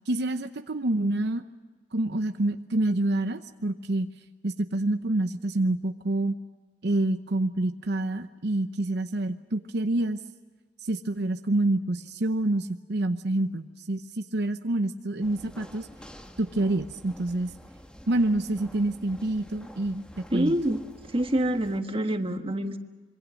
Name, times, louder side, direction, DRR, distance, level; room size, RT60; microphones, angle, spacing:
voice 1, 0.1-1.4 1.9-4.1 4.4-6.4 6.8-10.2 10.8-15.9 16.4-17.5 18.1-20.5, right 2 dB, 65° right, 8 dB, 0.8 m, -27 dB
sound 1, 15.2-21.8, equal, 5° left, 1.4 m, -48 dB
voice 2, 20.3-20.8 21.1-22.8, right 1 dB, 30° right, 6 dB, 1.5 m, -26 dB
26.0 x 23.5 x 6.3 m, 1.3 s
head